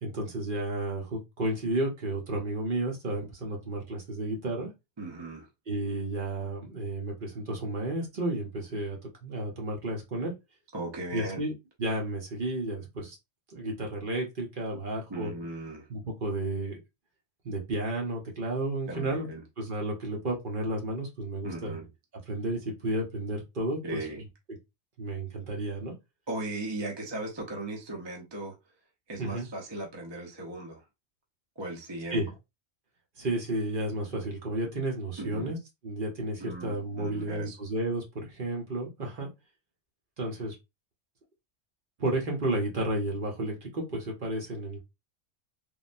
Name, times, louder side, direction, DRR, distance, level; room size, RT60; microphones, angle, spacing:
voice 1, 0.0-4.7 5.7-10.3 11.1-13.2 13.5-15.3 15.9-16.8 17.4-19.3 19.6-21.8 22.3-24.0 25.0-25.9 29.2-29.5 32.1-32.3 33.2-35.6 35.8-39.3 40.2-40.5 42.0-44.8, right 1 dB, 50° right, 1.0 m, -32 dB
voice 2, 5.0-5.5 10.7-11.5 15.1-15.9 18.9-19.4 21.4-21.9 23.8-24.2 26.3-28.5 29.1-30.8 31.6-32.2 35.2-35.5 36.4-37.6, right 2 dB, 25° right, 0.6 m, -37 dB
3.5 x 2.1 x 2.5 m
omnidirectional pair, 1.2 m